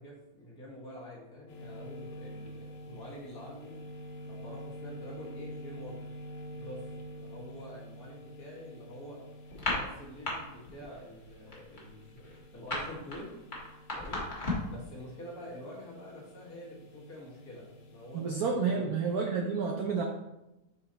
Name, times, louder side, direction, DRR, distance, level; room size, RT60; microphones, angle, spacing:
voice 1, 0.0-3.7 4.2-6.0 6.5-6.8 7.1-9.2 9.7-13.4 13.9-14.3 14.7-18.9, left 1 dB, 45° left, -4 dB, 1.8 m, -47 dB
sound 1, 1.5-18.5, equal, 85° left, 1.8 m, -48 dB
sound 2, 9.5-10.3 10.6-11.0 11.2-14.8, left 2 dB, 25° left, 1.3 m, -34 dB
voice 2, 18.1-20.0, right 5 dB, 75° right, 1 dB, 0.8 m, -30 dB
5.4 x 4.4 x 3.9 m, 0.94 s
omnidirectional pair, 2.3 m